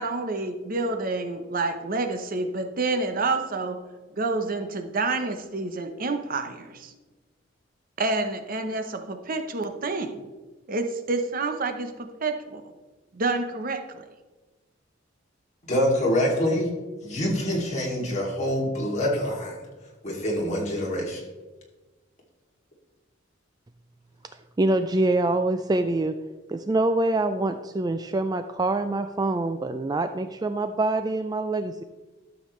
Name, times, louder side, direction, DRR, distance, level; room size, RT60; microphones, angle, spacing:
voice 1, 0.0-3.8 4.1-6.9 8.0-10.3 10.7-12.6 13.1-14.0, right 3 dB, 45° right, 6 dB, 0.8 m, -28 dB
voice 2, 15.6-16.7 17.0-19.6 20.0-21.2, equal, 35° left, -2 dB, 2.6 m, -25 dB
voice 3, 24.6-26.2 26.5-31.8, right 2 dB, 20° right, 9 dB, 0.3 m, -25 dB
12.5 x 7.2 x 3.2 m, 1.2 s
head